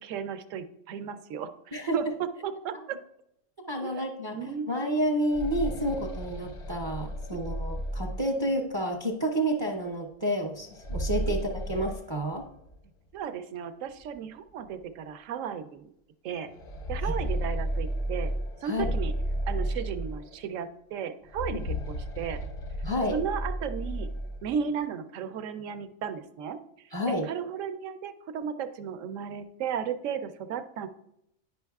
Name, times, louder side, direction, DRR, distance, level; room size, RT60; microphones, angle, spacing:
voice 1, 0.0-3.0 3.8-4.0 4.3-4.7 11.3-11.4 13.1-15.9 16.2-16.5 16.9-18.3 18.6-19.1 19.5-22.4 23.1-24.1 24.4-26.6 27.1-30.9, right 7 dB, 75° right, 10 dB, 0.9 m, -35 dB
voice 2, 3.7-12.4 17.0-17.1 18.6-18.9 22.8-23.2 26.9-27.3, equal, 30° right, 1 dB, 0.5 m, -30 dB
sound 1, 5.0-8.8 10.6-12.8 13.1-13.2 14.1-14.2 14.6-14.8 16.4-20.6 21.2-24.6, equal, 40° left, 0.4 m, -33 dB
10.0 x 5.4 x 2.3 m, 0.78 s
omnidirectional pair, 1.4 m